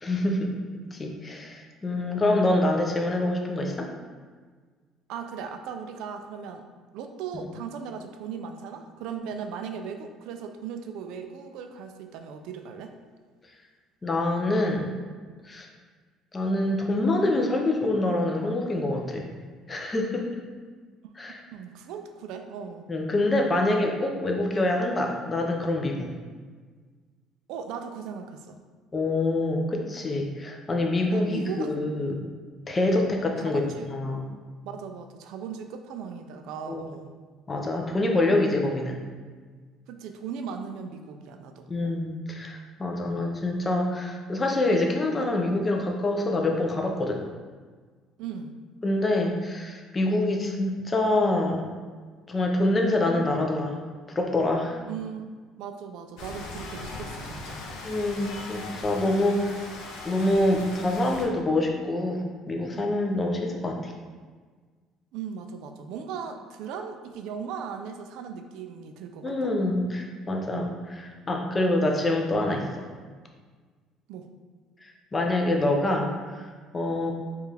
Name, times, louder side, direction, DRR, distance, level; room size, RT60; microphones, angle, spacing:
voice 1, 0.0-3.9 14.0-14.9 15.5-15.7 16.3-20.4 21.2-21.4 22.9-26.1 28.9-32.2 32.7-34.3 36.7-36.8 37.5-39.0 41.7-47.2 48.8-51.7 52.3-53.8 54.1-54.8 57.8-59.7 60.0-63.9 69.2-72.9 74.8-76.5 76.7-77.1, left 2 dB, 20° left, 2 dB, 0.5 m, -26 dB
voice 2, 5.1-6.6 6.9-12.9 21.0-21.1 21.4-22.8 27.5-28.6 31.1-31.8 33.4-33.9 34.6-37.1 39.9-41.7 48.2-48.5 54.9-55.3 55.6-57.6 65.1-69.5 74.1-74.3, right 6 dB, 75° right, 6 dB, 0.3 m, -38 dB
Rain, 56.2-61.3, left 3 dB, 85° left, 0.6 m, -39 dB
4.5 x 2.4 x 3.3 m, 1.5 s
cardioid pair, 145°, 0 cm